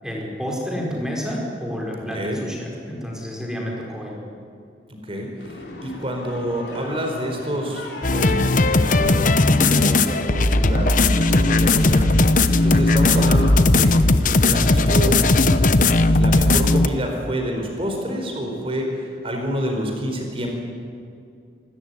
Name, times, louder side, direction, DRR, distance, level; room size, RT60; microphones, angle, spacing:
voice 1, 0.0-4.2, equal, 5° right, -2 dB, 5.3 m, -29 dB
voice 2, 5.0-9.3 9.6-13.9 14.2-15.2 16.0-20.5, equal, 30° right, 2 dB, 4.7 m, -28 dB
sound 1, 5.4-13.7, left 1 dB, 70° left, 4.4 m, -38 dB
sound 2, 8.0-16.9, left 2 dB, 45° left, 0.9 m, -17 dB
26.5 x 14.0 x 9.6 m, 2.4 s
head